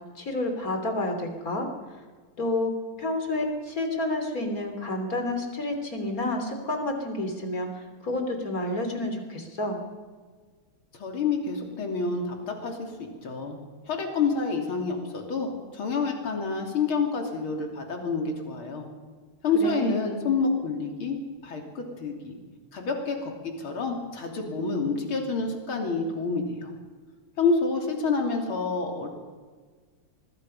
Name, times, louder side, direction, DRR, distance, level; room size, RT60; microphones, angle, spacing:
voice 1, 0.2-1.7 2.4-2.7 3.0-9.8 19.6-20.0, left 1 dB, 40° left, 5 dB, 3.5 m, -29 dB
voice 2, 11.0-13.6 13.9-18.8 19.4-22.4 22.7-23.3 23.6-26.7 27.4-29.1, left 4 dB, 70° left, 2 dB, 3.8 m, -28 dB
24.5 x 20.5 x 5.6 m, 1.5 s
omnidirectional pair, 2.4 m